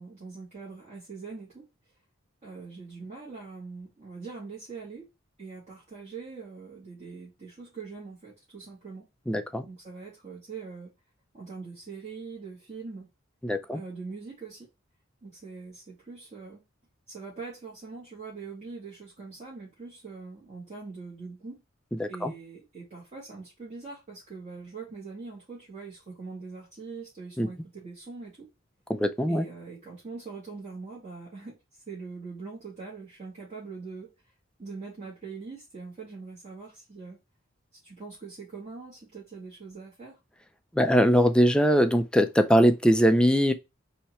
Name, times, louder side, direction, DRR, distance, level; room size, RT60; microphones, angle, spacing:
voice 1, 0.0-1.7 2.4-5.1 5.4-9.0 9.7-10.9 11.3-13.1 13.7-14.7 15.2-16.6 17.1-21.6 22.1-28.5 29.3-31.6 31.9-34.1 34.6-37.2 37.8-40.2, right 4 dB, 35° right, 2.1 m, -42 dB
voice 2, 9.3-9.6 13.4-13.8 22.0-22.3 27.4-27.5 28.9-29.4 40.8-43.5, equal, 5° left, 0.4 m, -21 dB
4.3 x 2.8 x 4.3 m
head